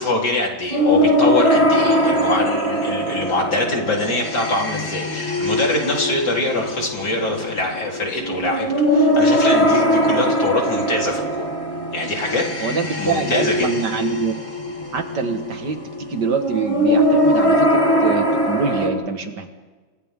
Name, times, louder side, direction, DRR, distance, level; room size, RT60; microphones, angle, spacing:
voice 1, 0.0-11.5 11.9-13.7, left 2 dB, 75° left, -1 dB, 4.4 m, -24 dB
sound 1, 0.7-18.9, equal, 20° left, 3.4 m, -21 dB
voice 2, 12.6-14.3 14.9-15.8 16.1-19.5, right 5 dB, 80° right, 6 dB, 2.3 m, -25 dB
29.5 x 25.5 x 3.8 m, 1.3 s
omnidirectional pair, 1.8 m